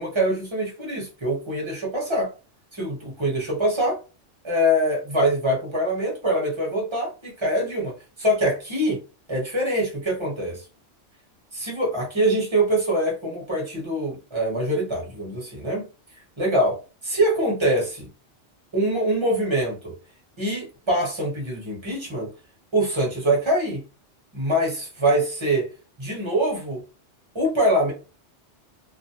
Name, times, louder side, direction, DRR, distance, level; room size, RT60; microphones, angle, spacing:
voice 1, 0.0-2.3 2.7-4.0 4.4-7.9 8.2-9.0 9.3-10.6 11.5-15.8 16.4-16.8 17.0-18.1 18.7-19.9 20.4-22.3 22.7-23.8 24.3-25.7 26.0-26.8 27.3-27.9, right 1 dB, 25° right, -2 dB, 0.9 m, -24 dB
2.4 x 2.0 x 2.8 m, 0.33 s
omnidirectional pair, 1.3 m